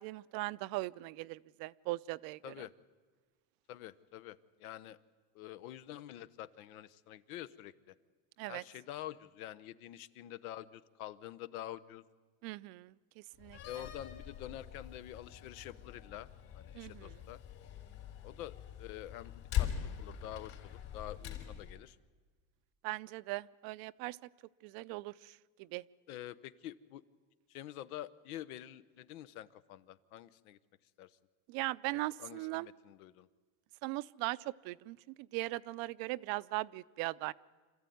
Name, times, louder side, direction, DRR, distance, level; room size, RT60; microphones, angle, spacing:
voice 1, 0.0-2.5 8.4-8.6 12.4-13.6 16.7-17.2 22.8-24.2 24.6-25.8 31.5-32.7 33.8-37.3, right 20 dB, 55° right, 17 dB, 0.6 m, -39 dB
voice 2, 3.7-5.0 5.3-7.9 8.5-12.0 13.6-16.3 16.5-17.4 18.2-22.0 26.1-27.0 27.5-30.6 31.0-31.1 32.2-33.3, left 13 dB, 85° left, 16 dB, 1.0 m, -47 dB
Slam, 13.4-21.8, left 10 dB, 60° left, 4.1 m, -42 dB
26.5 x 14.0 x 9.3 m, 1.4 s
supercardioid pair, 130°, 42 cm